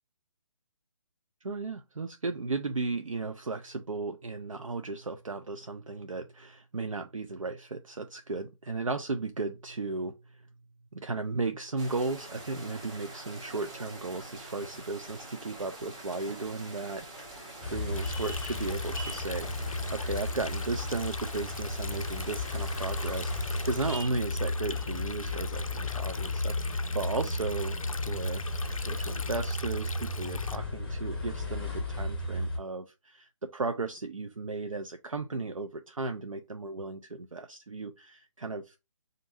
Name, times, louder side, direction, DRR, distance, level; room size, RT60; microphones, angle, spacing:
voice 1, 1.4-10.4 10.9-27.8 28.1-28.4 28.8-38.7, right 3 dB, 75° right, 0.5 m, -35 dB
sound 1, 11.8-24.0, right 2 dB, 10° right, 0.3 m, -46 dB
sound 2, 17.6-32.6, left 2 dB, 5° left, 0.8 m, -34 dB
Stream, 18.0-30.6, left 4 dB, 85° left, 0.4 m, -42 dB
5.2 x 2.6 x 2.6 m
figure-of-eight pair, 145°, 17 cm